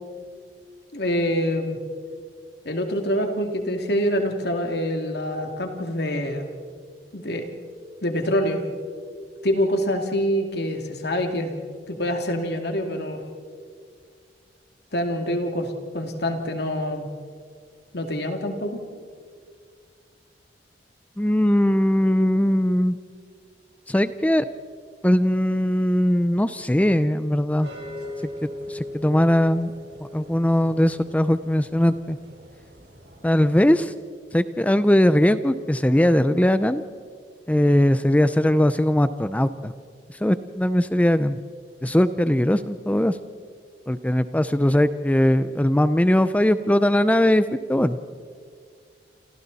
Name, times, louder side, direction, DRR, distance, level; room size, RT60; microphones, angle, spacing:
voice 1, 0.9-1.8 2.6-6.5 7.1-7.5 8.0-8.6 9.4-11.6 11.9-13.2 14.9-17.1 17.9-18.8, equal, 65° left, 4 dB, 2.6 m, -25 dB
voice 2, 21.2-23.0 23.9-24.5 25.0-27.7 28.4-29.7 30.1-32.2 33.2-33.9 34.3-36.8 37.5-39.7 40.1-41.3 41.8-43.2 43.9-48.0, left 1 dB, 10° left, 12 dB, 0.5 m, -20 dB
sound 1, 27.6-33.7, left 1 dB, 75° right, 4.1 m, -40 dB
28.5 x 27.5 x 4.1 m, 2.1 s
head